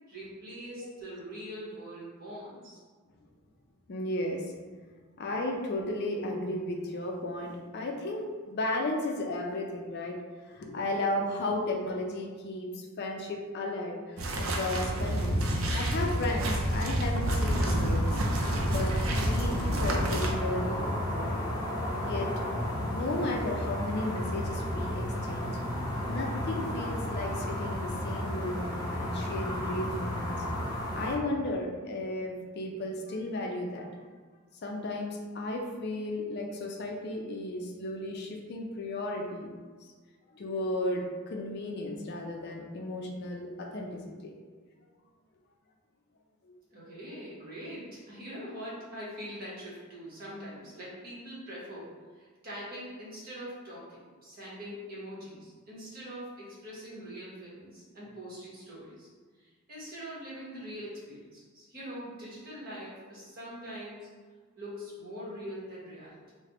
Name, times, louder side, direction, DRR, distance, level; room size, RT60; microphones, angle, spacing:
voice 1, 0.1-2.8 46.7-59.1 59.3-64.1 64.6-66.2, equal, 45° right, -7 dB, 1.2 m, -43 dB
voice 2, 3.9-4.5 5.2-10.2 10.5-18.3 18.6-21.5 21.9-22.3 22.9-30.4 30.9-33.9 34.6-39.5 40.3-44.3 46.4-46.5, left 1 dB, 55° left, 1 dB, 0.4 m, -34 dB
sound 1, 14.2-20.3, right 1 dB, 75° right, 0.5 m, -29 dB
sound 2, 17.4-31.2, left 1 dB, 20° left, 0.7 m, -33 dB
3.3 x 2.1 x 3.6 m, 1.5 s
head